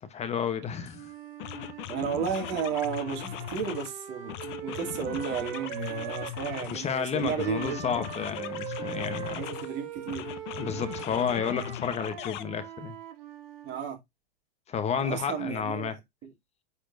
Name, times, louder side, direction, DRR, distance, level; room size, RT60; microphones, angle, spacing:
voice 1, 0.1-1.1 6.7-9.4 10.6-12.9 14.7-15.9, left 7 dB, 20° left, 0.9 m, -31 dB
sound 1, 0.9-1.0 1.4-3.9 4.3-6.8 7.2-9.7 10.1-12.4, left 11 dB, 55° left, 1.0 m, -39 dB
Wind instrument woodwind instrument, 0.9-6.7 7.4-13.9, right 10 dB, 65° right, 1.9 m, -41 dB
voice 2, 1.9-4.3 4.6-8.0 9.3-10.3 13.6-14.0 15.0-15.9 16.2-16.3, right 7 dB, 35° right, 2.2 m, -33 dB
10.0 x 4.3 x 2.6 m
supercardioid pair, 135°, 30 cm